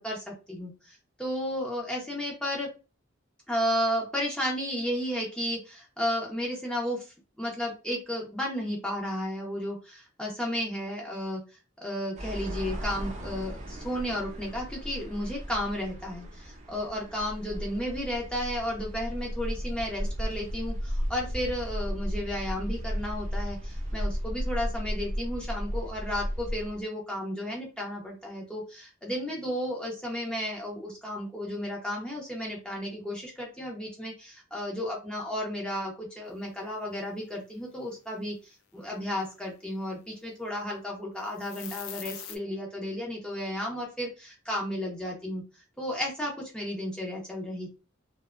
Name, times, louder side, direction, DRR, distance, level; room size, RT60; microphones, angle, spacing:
voice 1, 0.0-2.7 3.5-7.1 7.4-11.4 11.8-38.4 38.7-45.4 45.8-47.7, equal, 5° left, -2 dB, 0.6 m, -33 dB
sound 1, 12.2-26.8, equal, 40° right, 0.6 m, -35 dB
sound 2, 41.3-42.4, left 10 dB, 90° left, 0.3 m, -41 dB
2.5 x 2.1 x 2.4 m, 0.31 s
head